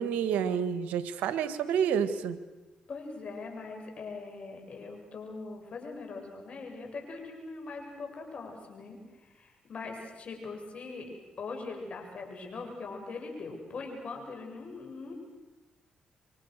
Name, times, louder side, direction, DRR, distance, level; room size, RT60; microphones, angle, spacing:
voice 1, 0.0-2.4, right 8 dB, 85° right, 12 dB, 1.4 m, -29 dB
voice 2, 2.9-11.1 11.4-15.2, left 3 dB, 55° left, 3 dB, 7.7 m, -41 dB
29.5 x 24.0 x 6.6 m, 1.1 s
supercardioid pair, 60°, 2 cm